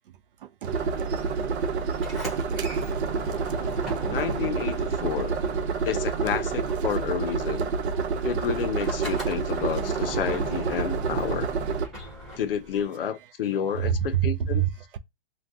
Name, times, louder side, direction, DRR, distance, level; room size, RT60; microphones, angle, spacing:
voice 1, 0.4-0.7 2.3-2.9 3.5-3.6 7.9-8.1 12.2-12.4 13.8-15.0, right 10 dB, 55° right, 0.5 m, -28 dB
sound 1, 0.6-11.9, right 5 dB, 75° right, 0.9 m, -28 dB
Sliding door, 1.9-6.2 6.5-12.8, right 1 dB, ahead, 0.4 m, -40 dB
voice 2, 4.1-5.4 5.8-7.7 8.2-11.5 12.4-14.6, left 8 dB, 55° left, 0.6 m, -30 dB
2.5 x 2.3 x 3.5 m
hypercardioid pair, 165°, 33 cm